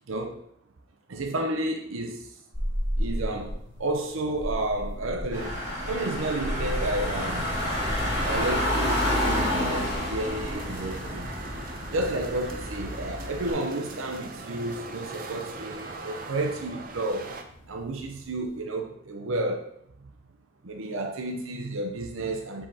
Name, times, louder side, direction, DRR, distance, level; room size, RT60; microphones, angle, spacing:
voice 1, 0.1-0.4 1.1-2.3 3.0-5.6 5.9-7.6 8.3-11.3 11.9-17.3 17.7-19.7 20.6-22.7, right 2 dB, 85° right, 0.7 m, -31 dB
sound 1, 2.5-18.6, equal, 45° left, 1.5 m, -38 dB
Car / Engine, 5.3-13.5, left 1 dB, 15° right, 2.1 m, -29 dB
sound 2, 5.4-17.4, right 3 dB, 45° right, 0.6 m, -42 dB
7.6 x 4.9 x 2.8 m
head